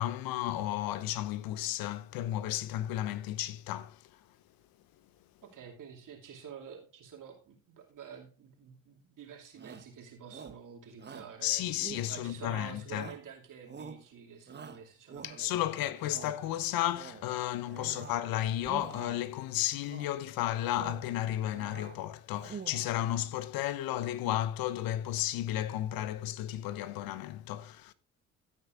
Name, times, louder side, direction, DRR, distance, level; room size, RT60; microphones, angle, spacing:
voice 1, 0.0-4.1 11.4-13.1 15.2-27.9, left 13 dB, 55° left, 0.9 m, -33 dB
voice 2, 5.4-11.6 12.1-16.5 17.7-18.1, right 7 dB, 50° right, 2.6 m, -49 dB
Shout, 9.6-9.9 10.3-10.6 11.0-11.3 11.8-12.5 12.9-13.3 13.6-14.0 14.5-15.6 16.0-16.4 16.8-17.3 17.6-18.3 18.6-19.3 19.8-20.2 20.6-21.1 21.4-22.0 22.3-23.0, right 6 dB, 25° right, 1.0 m, -47 dB
15.5 x 8.4 x 2.5 m
hypercardioid pair, 55°, 41 cm